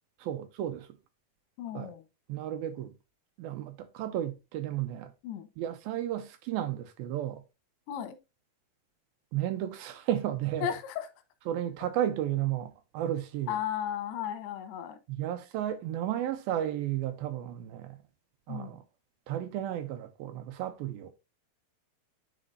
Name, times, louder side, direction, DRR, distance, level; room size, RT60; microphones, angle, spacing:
voice 1, 0.2-0.9 1.7-1.9 2.3-2.9 3.4-5.1 5.6-7.4 9.3-10.8 11.5-13.6 15.1-18.0 18.5-18.8 19.3-21.1, right 12 dB, 80° right, 2.4 m, -33 dB
voice 2, 1.6-2.0 5.2-5.5 7.9-8.2 10.6-11.1 13.5-15.0 18.5-18.7, left 10 dB, 85° left, 3.0 m, -34 dB
11.5 x 4.4 x 2.6 m
omnidirectional pair, 4.5 m